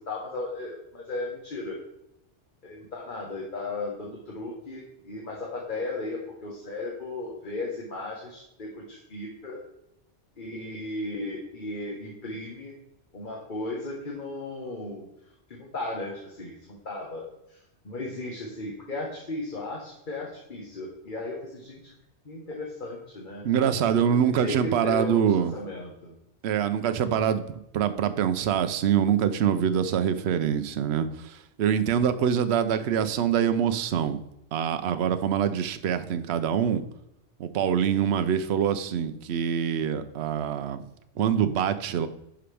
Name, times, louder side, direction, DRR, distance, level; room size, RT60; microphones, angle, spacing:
voice 1, 0.0-1.8 2.6-9.6 10.4-12.7 13.1-15.1 15.5-17.6 17.8-21.9 22.2-23.5 24.1-25.2 25.5-26.1, left 2 dB, 45° left, -1 dB, 1.4 m, -35 dB
voice 2, 23.4-25.6 26.4-34.2 34.5-36.8 37.4-40.8 41.2-42.1, right 8 dB, 65° right, 10 dB, 0.9 m, -25 dB
10.0 x 5.7 x 3.4 m, 0.83 s
omnidirectional pair, 1.2 m